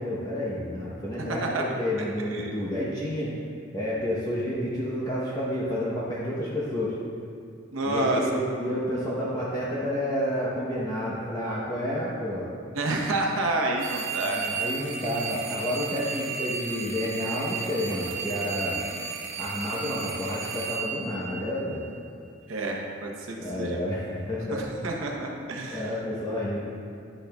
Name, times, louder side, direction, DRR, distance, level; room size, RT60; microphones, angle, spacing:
voice 1, 0.0-3.3 3.7-6.9 7.9-12.5 14.2-18.9 19.4-21.8 23.4-24.7 25.7-26.6, left 1 dB, 20° left, -7 dB, 0.8 m, -30 dB
voice 2, 1.3-1.7 2.3-2.5 7.7-8.3 12.7-14.5 22.5-23.8 24.5-26.0, right 2 dB, 90° right, 0 dB, 0.9 m, -29 dB
sound 1, 13.8-22.0, right 6 dB, 70° right, 0.5 m, -34 dB
10.0 x 6.6 x 2.3 m, 2.5 s
head